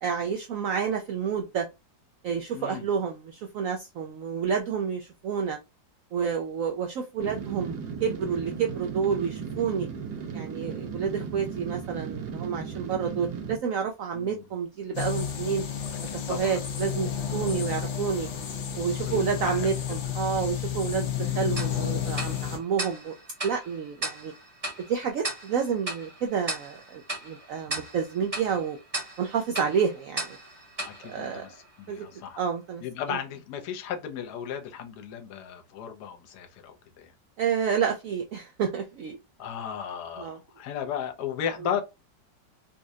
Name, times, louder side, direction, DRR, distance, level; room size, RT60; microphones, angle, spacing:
voice 1, 0.0-1.7 2.2-5.6 6.1-9.9 10.3-15.6 16.0-18.3 18.8-23.1 23.4-24.3 24.8-28.8 29.2-30.4 31.1-31.4 31.9-32.1 32.4-32.8 33.1-33.2 37.4-39.2 40.2-40.4, right 6 dB, 85° right, 0.7 m, -29 dB
voice 2, 2.5-2.9 14.1-14.4 16.1-16.6 19.1-19.7 20.0-20.1 30.8-32.4 32.8-37.1 39.4-41.8, left 8 dB, 65° left, 1.2 m, -35 dB
sound 1, 7.2-13.6, right 6 dB, 65° right, 1.3 m, -36 dB
sound 2, 14.9-22.6, left 9 dB, 85° left, 1.6 m, -31 dB
Tick-tock, 21.6-32.0, right 2 dB, 25° right, 0.9 m, -37 dB
4.2 x 2.4 x 2.6 m
omnidirectional pair, 2.0 m